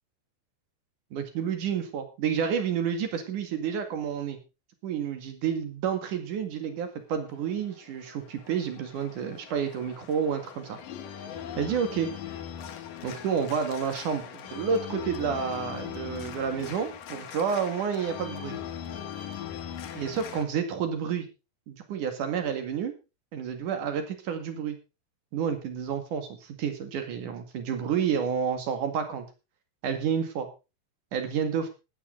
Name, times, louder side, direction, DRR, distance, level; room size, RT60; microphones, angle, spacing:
voice 1, 1.1-4.4 4.8-10.8 11.6-12.1 13.0-18.6 19.9-21.3 21.7-22.9 23.3-24.8 25.3-29.3 29.8-30.5 31.1-31.7, right 7 dB, 55° right, 8 dB, 3.1 m, -30 dB
Organ, 7.3-20.4, left 9 dB, 60° left, 2.7 m, -40 dB
14.5 x 11.0 x 3.9 m, 0.29 s
omnidirectional pair, 5.1 m